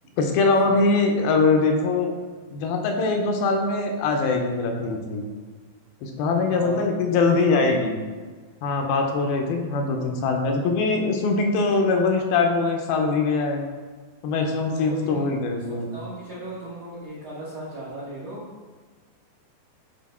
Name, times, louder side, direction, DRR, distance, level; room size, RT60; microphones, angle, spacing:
voice 1, 0.2-2.1 2.5-5.2 6.0-8.0 8.6-13.6 14.2-15.9, left 3 dB, 80° left, 3 dB, 2.5 m, -22 dB
voice 2, 6.5-7.4 14.6-18.4, right 1 dB, 70° right, -9 dB, 1.2 m, -38 dB
8.4 x 3.3 x 4.2 m, 1.5 s
omnidirectional pair, 4.2 m